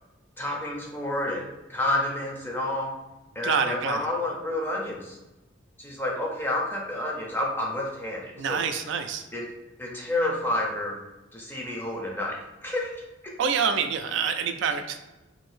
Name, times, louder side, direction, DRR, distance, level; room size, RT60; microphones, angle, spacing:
voice 1, 0.4-2.9 3.4-5.2 5.8-8.6 9.3-9.4 9.8-11.0 11.3-12.9, left 1 dB, 10° left, -2 dB, 0.5 m, -29 dB
voice 2, 3.4-4.1 8.4-9.3 13.4-15.0, right 6 dB, 70° right, 7 dB, 0.3 m, -26 dB
2.6 x 2.6 x 3.3 m, 1.0 s
head